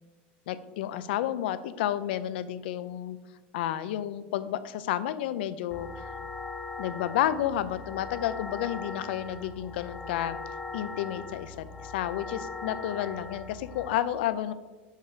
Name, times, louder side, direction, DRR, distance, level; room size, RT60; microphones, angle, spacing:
voice 1, 0.5-3.2 3.5-6.2 6.8-10.4 10.7-14.5, left 11 dB, 65° left, 13 dB, 0.5 m, -31 dB
sound 1, 5.7-13.9, left 4 dB, 10° left, 0.6 m, -40 dB
6.4 x 5.6 x 4.9 m, 1.2 s
supercardioid pair, 170°, 6 cm